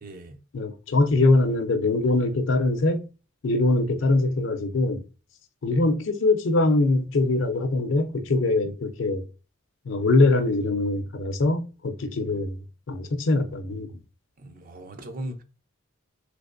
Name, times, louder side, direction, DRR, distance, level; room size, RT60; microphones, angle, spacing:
voice 1, 0.0-0.4 14.4-15.4, right 1 dB, 45° right, 0.4 m, -38 dB
voice 2, 0.5-3.0 3.4-5.0 5.6-9.2 9.9-12.5 12.9-13.9, left 2 dB, 70° left, 0.5 m, -22 dB
3.2 x 2.9 x 2.5 m
head